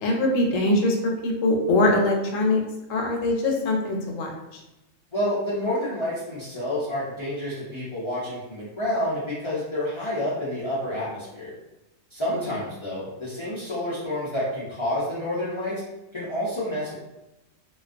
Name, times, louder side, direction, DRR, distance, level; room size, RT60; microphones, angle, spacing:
voice 1, 0.0-2.6 2.9-4.6, left 2 dB, 75° left, 1 dB, 0.9 m, -23 dB
voice 2, 5.1-11.5 12.1-15.8 16.1-16.9, left 1 dB, 45° left, -9 dB, 0.3 m, -29 dB
2.2 x 2.2 x 2.5 m, 0.93 s
omnidirectional pair, 1.4 m